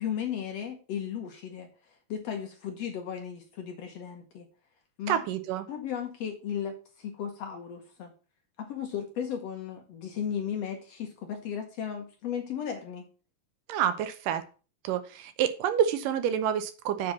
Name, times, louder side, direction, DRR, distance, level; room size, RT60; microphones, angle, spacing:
voice 1, 0.0-4.5 5.0-5.2 5.7-8.1 8.6-13.0, left 8 dB, 75° left, 4 dB, 1.5 m, -35 dB
voice 2, 5.1-5.7 13.7-14.4 14.8-17.1, right 9 dB, 75° right, 11 dB, 2.3 m, -28 dB
7.5 x 4.5 x 7.1 m, 0.35 s
omnidirectional pair, 4.3 m